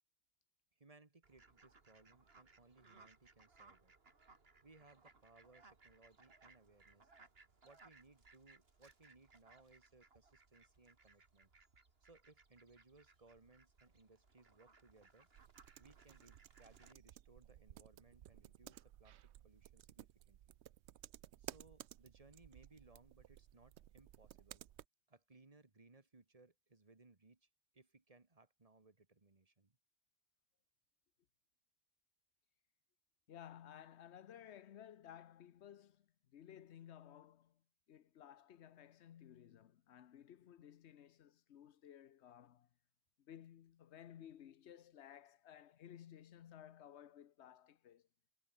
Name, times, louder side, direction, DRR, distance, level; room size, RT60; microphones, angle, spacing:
voice 1, 0.8-3.9 4.6-7.1 7.6-11.5 12.0-15.3 15.8-20.6 21.4-24.7 25.1-29.8, right 3 dB, 35° right, 1.9 m, -66 dB
Fowl, 1.2-16.9, right 3 dB, 65° right, 2.5 m, -67 dB
sound 1, 15.3-24.9, right 12 dB, 85° right, 0.9 m, -57 dB
voice 2, 33.3-42.7 43.2-48.1, left 10 dB, 90° left, 1.1 m, -57 dB
omnidirectional pair, 1.1 m